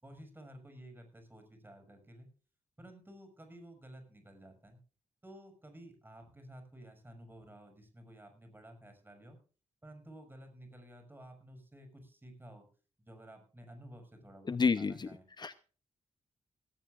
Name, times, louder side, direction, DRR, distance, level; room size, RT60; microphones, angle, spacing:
voice 1, 0.0-2.3 2.8-4.8 5.2-9.4 9.8-12.7 13.0-15.3, right 1 dB, 15° right, 6 dB, 6.3 m, -53 dB
voice 2, 14.5-15.1 15.4-15.7, left 5 dB, 35° left, 13 dB, 0.7 m, -30 dB
18.0 x 16.0 x 2.5 m, 0.37 s
cardioid pair, 95°, 13 cm